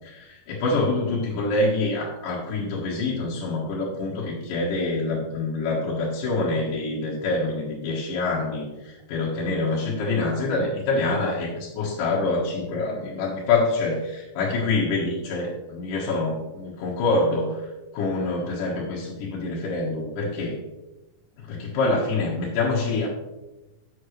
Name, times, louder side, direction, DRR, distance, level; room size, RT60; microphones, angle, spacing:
voice 1, 0.0-20.6 21.4-23.1, left 3 dB, 70° left, -5 dB, 3.0 m, -26 dB
11.5 x 7.8 x 3.2 m, 1.0 s
omnidirectional pair, 4.0 m